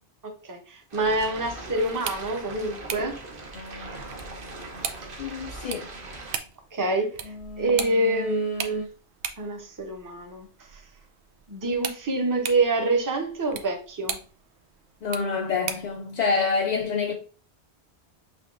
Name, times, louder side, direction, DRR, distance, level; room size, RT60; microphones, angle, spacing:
voice 1, 0.4-3.2 3.7-4.0 6.7-8.9 9.4-10.5 10.7-10.8 11.5-14.2, right 2 dB, 20° right, 0.6 m, -26 dB
sound 1, 0.9-6.4, right 2 dB, 55° right, 1.0 m, -40 dB
sound 2, 1.9-16.0, right 7 dB, 85° right, 0.8 m, -39 dB
sound 3, 3.5-6.5 7.2-8.9, left 3 dB, 75° left, 0.9 m, -41 dB
voice 2, 5.2-5.9 15.0-17.1, left 5 dB, 55° left, 0.5 m, -26 dB
5.9 x 2.9 x 2.5 m
omnidirectional pair, 1.1 m